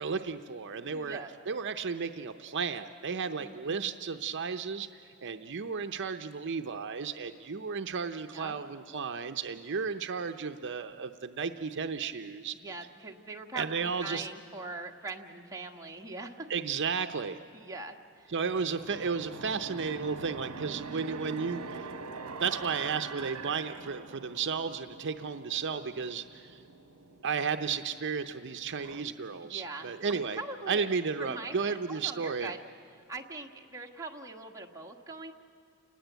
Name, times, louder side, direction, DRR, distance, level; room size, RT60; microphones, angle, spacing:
voice 1, 0.0-1.2 1.5-12.6 13.5-14.3 16.5-17.4 18.3-21.9 22.4-26.6 27.2-30.4 30.7-32.5, right 5 dB, 55° right, 7 dB, 0.6 m, -33 dB
voice 2, 0.9-1.3 3.4-3.8 8.3-8.6 12.6-16.5 17.5-18.3 29.4-30.9 31.2-32.6 33.1-35.3, right 3 dB, 15° right, 0 dB, 1.4 m, -42 dB
sound 1, 18.4-29.1, right 4 dB, 70° right, 1.1 m, -44 dB
29.0 x 19.5 x 8.1 m, 2.7 s
head